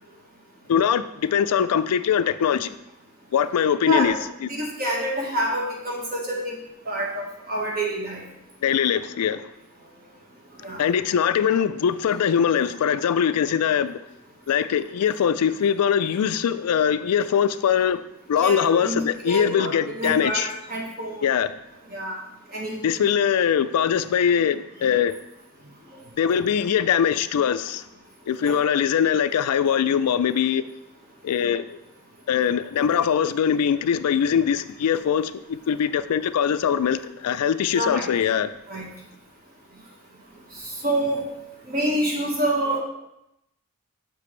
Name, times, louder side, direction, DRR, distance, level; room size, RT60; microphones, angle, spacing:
voice 1, 0.7-2.8 3.3-4.1 4.4-4.5 8.6-9.5 10.8-14.0 14.5-18.0 18.3-20.5 21.2-21.5 22.8-25.1 26.2-27.8 28.3-30.6 31.2-31.8 32.3-38.5, left 8 dB, 80° left, 0.3 m, -22 dB
voice 2, 3.8-4.1 4.5-6.5 6.9-8.2 10.6-10.8 18.4-21.3 21.9-22.2 22.5-22.8 28.4-28.6 37.7-38.1 38.7-38.9 40.6-41.3 41.7-42.8, right 1 dB, 40° right, 1.5 m, -27 dB
6.7 x 5.9 x 3.2 m
head